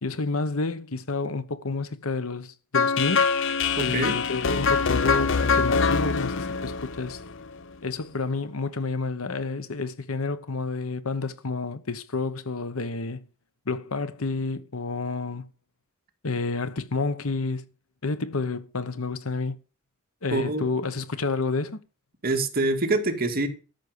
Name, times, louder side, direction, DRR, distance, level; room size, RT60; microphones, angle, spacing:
voice 1, 0.0-3.3 3.8-7.2 7.8-13.2 13.7-15.5 16.2-17.7 18.0-19.6 20.2-21.8, left 3 dB, 80° left, 1.1 m, -29 dB
sound 1, 2.7-7.7, left 5 dB, 60° left, 0.8 m, -24 dB
voice 2, 3.8-4.2 20.3-20.7 22.2-23.5, right 2 dB, 45° right, 2.2 m, -25 dB
13.0 x 6.3 x 6.9 m
head